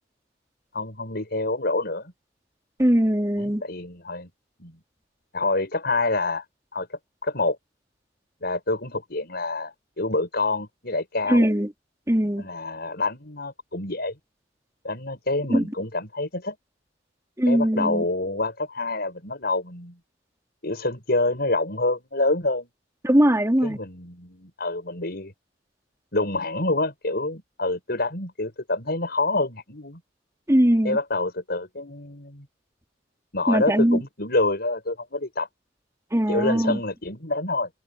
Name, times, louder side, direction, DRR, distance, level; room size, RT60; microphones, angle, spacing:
voice 1, 0.7-2.1 3.4-4.3 4.6-4.8 5.3-6.5 6.7-7.6 8.4-11.5 12.4-14.2 14.8-16.6 17.5-20.0 20.6-22.7 23.6-25.3 26.1-30.0 30.8-32.5 33.3-35.5 36.3-37.7, left 2 dB, 60° left, 7.3 m, -27 dB
voice 2, 2.8-3.6 11.3-11.7 12.1-12.4 15.5-15.6 17.4-18.0 23.0-23.8 30.5-31.0 33.5-34.0 36.1-36.8, equal, 15° right, 3.3 m, -20 dB
head